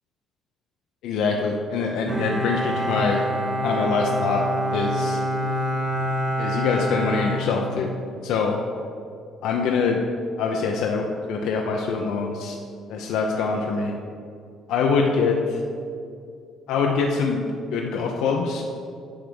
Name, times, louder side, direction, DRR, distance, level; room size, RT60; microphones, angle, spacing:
voice 1, 1.0-3.3 3.6-4.4 4.7-5.2 6.4-7.9 8.2-8.6 9.4-10.0 10.4-12.6 12.9-13.9 14.7-15.6 16.7-18.6, left 5 dB, 75° left, 1 dB, 0.6 m, -24 dB
Bowed string instrument, 2.1-8.2, equal, 30° right, 1.3 m, -26 dB
9.9 x 3.5 x 6.4 m, 2.4 s
cardioid pair, 175°, 0 cm